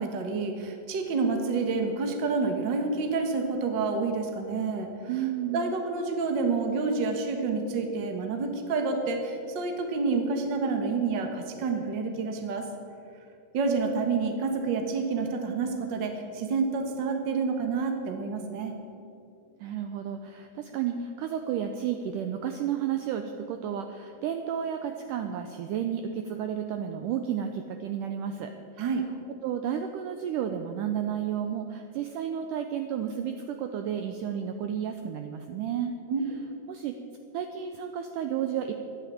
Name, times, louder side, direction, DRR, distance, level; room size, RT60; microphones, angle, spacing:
voice 1, 0.0-4.9 5.5-12.6 13.5-18.7 28.8-29.1 36.1-36.2, right 4 dB, 50° right, 4 dB, 1.4 m, -28 dB
voice 2, 5.1-5.6 19.6-28.9 29.4-35.9 36.7-37.0 37.3-38.7, right 9 dB, 75° right, 6 dB, 1.9 m, -32 dB
12.5 x 11.0 x 8.6 m, 2.5 s
omnidirectional pair, 4.3 m